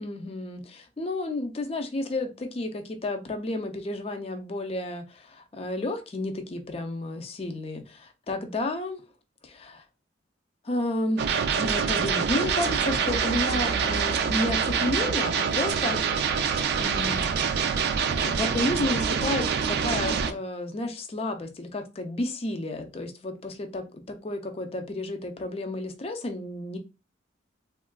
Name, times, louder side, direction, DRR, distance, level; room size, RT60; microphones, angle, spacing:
voice 1, 0.0-9.0 9.4-9.8 10.6-17.2 18.2-26.8, left 1 dB, 30° left, 0.4 m, -31 dB
sound 1, 11.2-20.3, right 6 dB, 60° right, 0.3 m, -26 dB
3.5 x 2.4 x 2.2 m
head